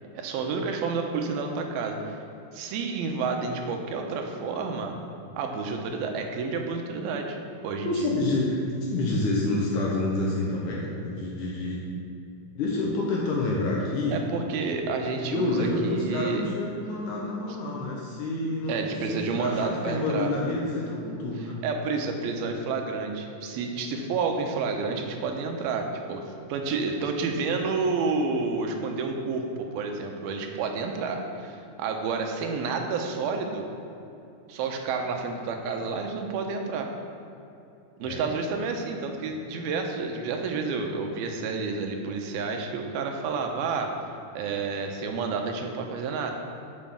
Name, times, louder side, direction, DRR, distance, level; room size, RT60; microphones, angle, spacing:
voice 1, 0.2-2.2 2.5-5.0 5.4-7.4 7.6-8.1 14.1-16.4 18.7-20.3 21.6-33.7 34.5-36.9 38.0-43.9 44.4-46.3, right 4 dB, 90° right, 3 dB, 2.8 m, -30 dB
voice 2, 7.8-11.9 12.5-14.2 15.3-18.7 19.0-21.6 38.0-38.2, left 2 dB, 65° left, -3 dB, 2.3 m, -28 dB
7.5 x 6.3 x 7.1 m, 2.8 s
omnidirectional pair, 4.2 m